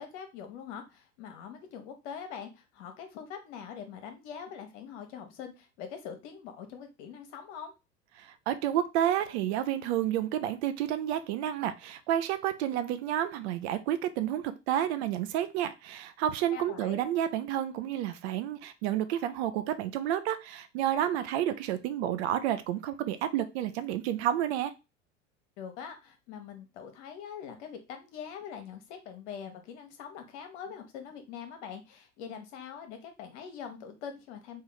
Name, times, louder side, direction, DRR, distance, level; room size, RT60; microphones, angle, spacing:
voice 1, 0.0-7.7 16.5-17.0 25.6-34.6, left 7 dB, 60° left, 6 dB, 1.1 m, -43 dB
voice 2, 8.2-24.7, right 11 dB, 60° right, 11 dB, 0.6 m, -30 dB
3.2 x 2.6 x 3.9 m, 0.26 s
hypercardioid pair, 85°, 38 cm